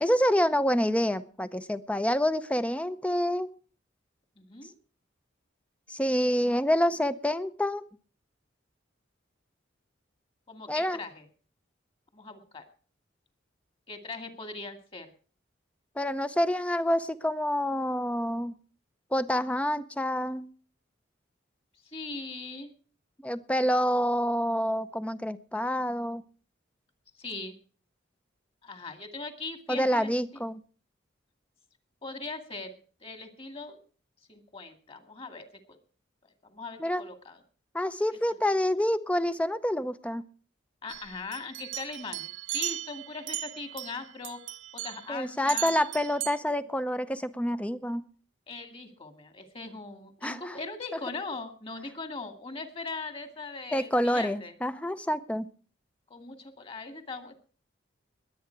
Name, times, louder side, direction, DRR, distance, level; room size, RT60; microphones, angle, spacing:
voice 1, 0.0-3.5 5.9-7.8 10.7-11.0 16.0-18.5 19.1-20.5 23.2-26.2 29.7-30.6 36.8-37.0 37.7-40.2 45.1-48.0 50.2-50.6 53.7-55.5, equal, 5° left, 13 dB, 0.7 m, -27 dB
voice 2, 4.4-4.7 10.5-11.3 12.1-12.6 13.9-15.1 21.9-22.7 27.2-27.5 28.6-30.4 32.0-32.7 33.0-33.8 34.3-35.8 36.4-37.4 40.8-44.4 44.7-45.8 48.5-54.5 56.1-57.4, left 3 dB, 30° left, 7 dB, 2.1 m, -40 dB
sound 1, 40.9-44.0 44.2-45.1 45.5-46.4, right 14 dB, 70° right, 0.7 m, -37 dB
21.5 x 8.8 x 4.6 m, 0.40 s
head